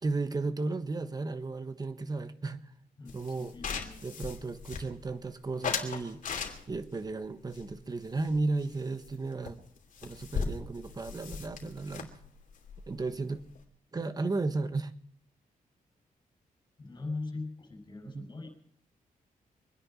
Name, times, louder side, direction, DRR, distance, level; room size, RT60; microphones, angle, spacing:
voice 1, 0.0-2.7 3.1-3.6 4.0-6.2 6.7-9.6 10.0-12.1 12.9-13.4 13.9-14.9 18.1-18.3, right 3 dB, 25° right, 10 dB, 1.3 m, -34 dB
voice 2, 3.0-4.0 16.8-18.5, left 3 dB, 30° left, 5 dB, 6.5 m, -40 dB
sound 1, 3.1-5.2 5.6-6.9 7.5-8.8 9.0-9.2 9.5-9.6 9.8-13.6, left 6 dB, 60° left, 2.8 m, -38 dB
24.5 x 10.5 x 5.8 m, 0.63 s
wide cardioid pair, 120°, 15 cm